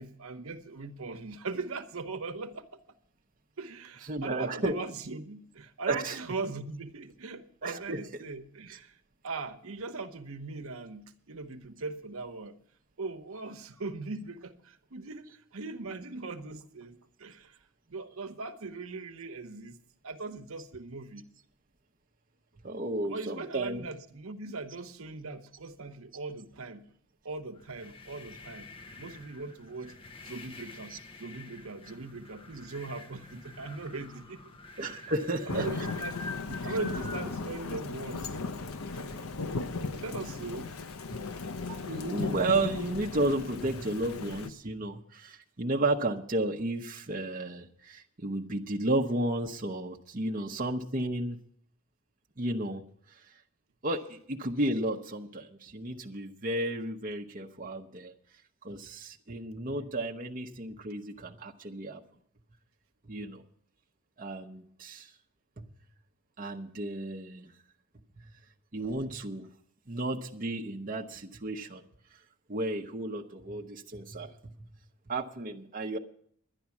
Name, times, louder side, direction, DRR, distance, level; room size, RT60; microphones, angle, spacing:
voice 1, 0.0-2.7 3.6-9.0 9.2-12.6 13.0-17.6 17.9-19.8 20.0-21.2 23.0-26.9 27.2-28.7 29.0-29.9 30.2-34.4 34.8-35.1 35.5-36.1 36.6-38.4 38.9-39.6 39.9-40.7 41.2-41.3 41.7-41.9, right 3 dB, 75° right, 7 dB, 1.0 m, -40 dB
voice 2, 4.1-4.8 5.9-6.2 7.6-8.0 22.6-23.9 30.9-31.0 34.8-35.7 41.7-51.4 52.4-52.8 53.8-58.1 58.6-62.0 63.1-63.4 64.2-65.1 65.6-65.7 66.4-67.5 68.7-69.5 69.9-71.8 72.5-74.5 75.1-76.0, right 2 dB, 40° right, 1 dB, 0.8 m, -33 dB
sound 1, 27.5-37.3, left 3 dB, 25° left, 0.7 m, -47 dB
Thunder / Rain, 35.5-44.5, left 4 dB, 80° left, 0.7 m, -36 dB
11.0 x 10.5 x 7.2 m, 0.64 s
head